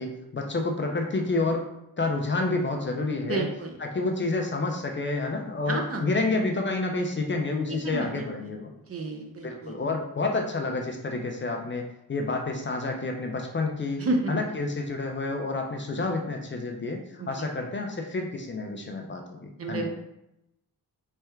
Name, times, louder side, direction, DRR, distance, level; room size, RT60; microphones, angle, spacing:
voice 1, 0.0-1.7 2.0-3.4 3.8-8.7 9.4-14.0 14.3-19.9, left 3 dB, 30° left, 2 dB, 0.5 m, -29 dB
voice 2, 3.3-3.8 5.7-6.0 7.8-8.3 8.9-9.9 14.0-14.4 17.2-17.5 19.6-19.9, right 2 dB, 40° right, 2 dB, 0.6 m, -30 dB
3.4 x 3.3 x 4.4 m, 0.85 s
wide cardioid pair, 155°, 38 cm